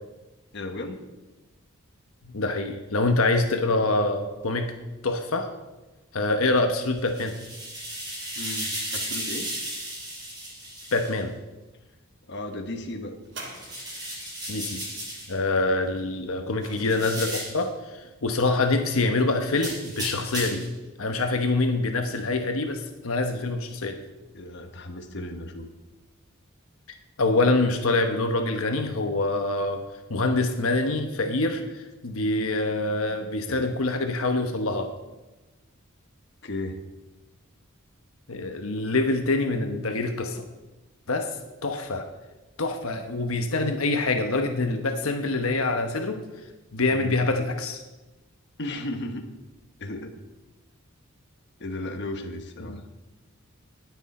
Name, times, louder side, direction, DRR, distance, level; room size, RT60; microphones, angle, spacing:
voice 1, 0.5-1.0 8.4-9.5 12.3-13.2 24.3-25.7 33.5-33.8 36.4-36.8 46.9-47.1 48.6-49.3 49.8-50.2 51.6-52.8, left 1 dB, 55° left, 5 dB, 1.2 m, -35 dB
voice 2, 2.3-4.7 5.0-5.5 6.1-7.3 10.9-11.3 14.5-14.8 15.3-20.6 21.0-24.0 27.2-29.8 30.1-34.9 38.3-40.4 41.1-41.3 41.6-42.1 42.6-46.2 46.7-47.8 52.6-52.8, left 2 dB, 75° left, 5 dB, 1.1 m, -25 dB
sound 1, 7.0-11.1 13.5-15.3 16.8-17.6 19.5-20.7, right 1 dB, 20° right, 5.6 m, -34 dB
sound 2, 13.2-14.3 16.0-17.4 18.2-18.3, right 2 dB, 60° right, 2.7 m, -44 dB
19.5 x 8.2 x 4.3 m, 1.1 s
head